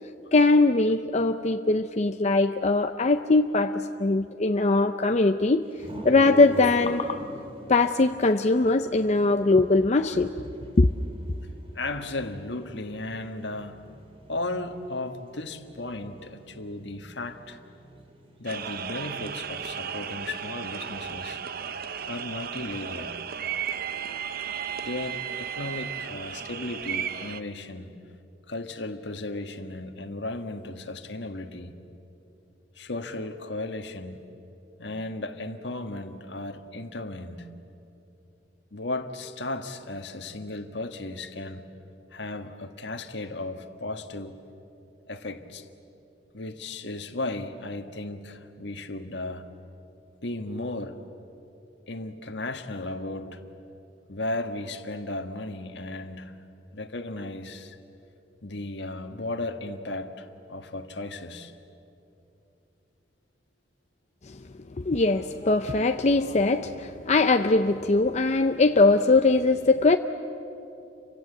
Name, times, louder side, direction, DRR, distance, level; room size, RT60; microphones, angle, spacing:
voice 1, 0.3-5.6 6.0-7.2 7.7-10.5 10.8-10.9 64.3-64.4 64.8-70.0, left 3 dB, 40° left, 7 dB, 0.6 m, -21 dB
sound 1, 5.8-18.6, equal, 30° right, 3.3 m, -44 dB
voice 2, 11.7-13.8 14.3-17.6 18.4-21.4 22.1-23.2 24.8-28.0 28.5-31.8 32.7-34.2 34.8-37.5 38.7-41.7 42.1-44.4 45.1-45.7 46.3-49.5 50.2-51.0 51.9-53.4 54.1-56.4 56.7-57.8 58.4-61.5, left 2 dB, 70° left, 7 dB, 1.6 m, -35 dB
sound 2, 18.5-27.4, right 8 dB, 55° right, 0.8 m, -34 dB
30.0 x 25.0 x 7.9 m, 2.8 s
head